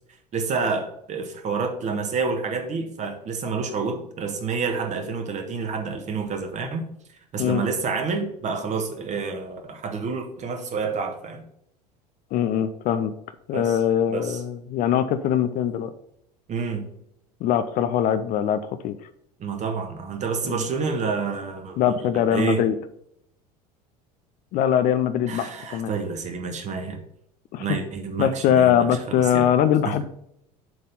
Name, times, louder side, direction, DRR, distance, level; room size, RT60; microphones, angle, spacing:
voice 1, 0.3-6.9 7.3-11.4 13.5-13.8 14.1-14.4 16.5-16.9 19.4-22.0 22.3-22.6 25.3-27.0 27.6-29.5 29.8-29.9, right 5 dB, 35° right, 5 dB, 1.4 m, -28 dB
voice 2, 12.3-13.1 13.5-15.9 17.4-19.0 21.8-22.7 24.5-25.9 27.5-27.7 28.2-30.0, left 9 dB, 40° left, 11 dB, 0.5 m, -22 dB
7.6 x 4.2 x 5.4 m, 0.74 s
figure-of-eight pair, 70°, 21 cm